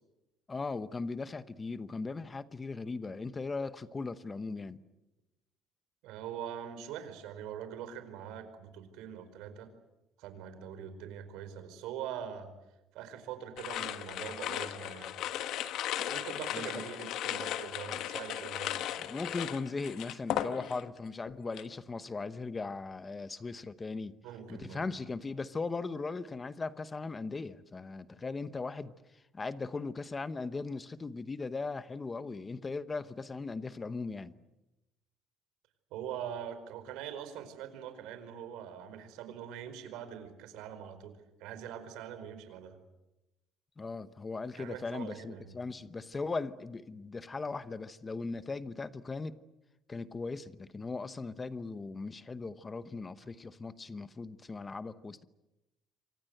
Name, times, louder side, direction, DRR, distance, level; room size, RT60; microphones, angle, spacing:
voice 1, 0.5-4.8 16.5-16.7 19.0-24.2 24.5-28.9 29.3-34.3 43.8-49.4 49.9-55.2, left 3 dB, 15° left, 0.9 m, -38 dB
voice 2, 6.0-9.7 10.2-12.5 12.9-15.1 16.1-19.1 24.2-24.8 35.9-42.8 44.5-45.5, right 9 dB, 90° right, 4.9 m, -43 dB
sound 1, 13.6-21.0 21.3-21.7, left 11 dB, 60° left, 1.4 m, -36 dB
28.0 x 25.0 x 7.9 m
cardioid pair, 175°, 0 cm